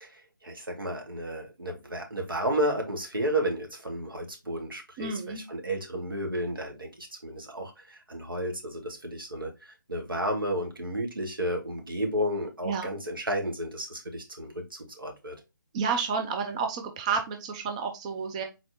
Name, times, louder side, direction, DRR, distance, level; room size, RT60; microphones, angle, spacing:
voice 1, 0.0-15.4, right 1 dB, 80° right, 1.9 m, -32 dB
voice 2, 5.0-5.4 12.6-12.9 15.7-18.4, right 5 dB, 20° right, 0.4 m, -30 dB
4.2 x 4.2 x 2.7 m
figure-of-eight pair, 145°, 11 cm